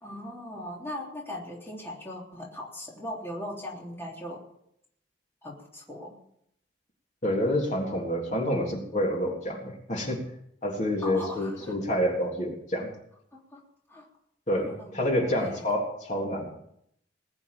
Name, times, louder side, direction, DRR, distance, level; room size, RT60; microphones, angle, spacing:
voice 1, 0.0-4.4 5.4-6.2 11.0-11.7 13.3-13.6 13.9-14.1 14.5-15.7, left 1 dB, 15° left, -3 dB, 3.4 m, -39 dB
voice 2, 7.2-10.2 10.6-12.9 14.5-16.5, left 1 dB, 45° left, 0 dB, 3.5 m, -28 dB
20.5 x 7.1 x 8.9 m, 0.73 s
head